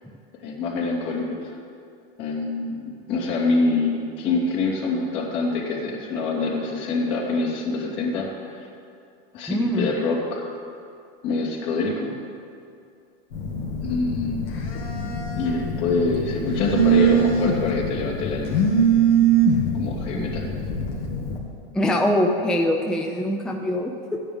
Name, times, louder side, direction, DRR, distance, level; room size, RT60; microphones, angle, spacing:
voice 1, 0.4-1.5 2.2-8.7 9.3-10.5 11.2-12.1 13.8-14.4 15.4-18.6 19.7-20.5, left 3 dB, 60° left, -3 dB, 2.9 m, -25 dB
voice 2, 9.5-9.9 20.1-20.3 21.7-24.2, left 1 dB, ahead, 1 dB, 0.6 m, -23 dB
Telephone, 13.3-21.4, right 4 dB, 75° left, 2.2 m, -23 dB
14.0 x 9.7 x 3.6 m, 2.4 s
hypercardioid pair, 115°, 30 cm